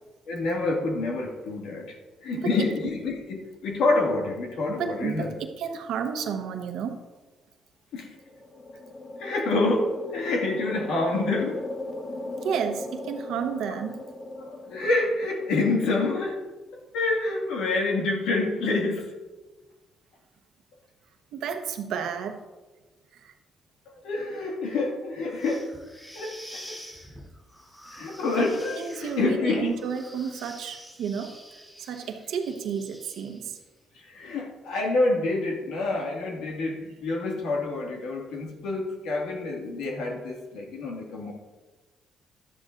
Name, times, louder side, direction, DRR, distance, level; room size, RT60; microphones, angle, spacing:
voice 1, 0.3-1.9 2.2-5.3 7.9-8.2 9.2-11.6 14.4-16.4 16.7-19.1 23.9-25.7 26.1-26.8 27.9-29.7 34.0-41.3, left 2 dB, 90° left, 0 dB, 2.1 m, -27 dB
voice 2, 4.7-7.0 12.4-14.0 21.3-22.4 23.1-23.3 28.7-33.6, right 7 dB, 85° right, 5 dB, 1.1 m, -32 dB
sound 1, 8.2-15.9, left 2 dB, 40° left, 1.0 m, -38 dB
sound 2, 25.3-33.6, equal, ahead, 3.7 m, -47 dB
12.5 x 10.5 x 2.6 m, 1.2 s
cardioid pair, 90°, 0 cm